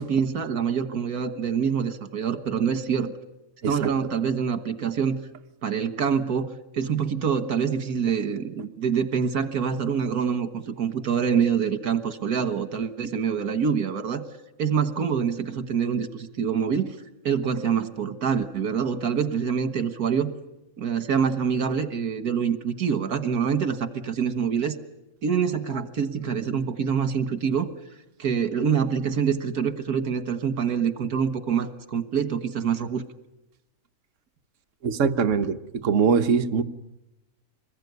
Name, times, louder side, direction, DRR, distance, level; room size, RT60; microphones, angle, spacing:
voice 1, 0.0-3.1 3.7-5.2 5.6-14.2 14.6-16.9 17.2-20.3 20.8-24.8 25.2-27.7 28.2-33.0, right 7 dB, 75° right, 10 dB, 2.0 m, -25 dB
voice 2, 34.8-36.6, right 5 dB, 55° right, 6 dB, 1.4 m, -22 dB
25.5 x 21.0 x 9.5 m, 0.94 s
omnidirectional pair, 1.6 m